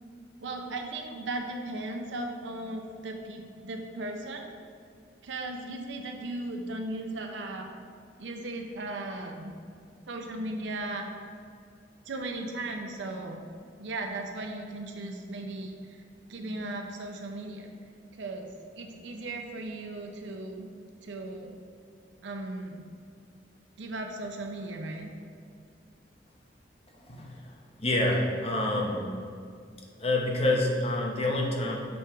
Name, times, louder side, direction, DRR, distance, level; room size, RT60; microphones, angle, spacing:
voice 1, 0.4-4.6 5.2-7.7 8.2-9.5 10.1-11.1 12.1-13.4 13.8-16.0 16.3-17.7 18.1-18.5 18.8-20.7 21.0-21.6 22.2-22.9 23.8-25.1, right 2 dB, 85° right, 3 dB, 0.6 m, -37 dB
voice 2, 27.0-27.3 27.8-29.1 30.0-31.8, left 1 dB, 30° left, -1 dB, 0.7 m, -27 dB
6.3 x 4.4 x 3.4 m, 2.3 s
head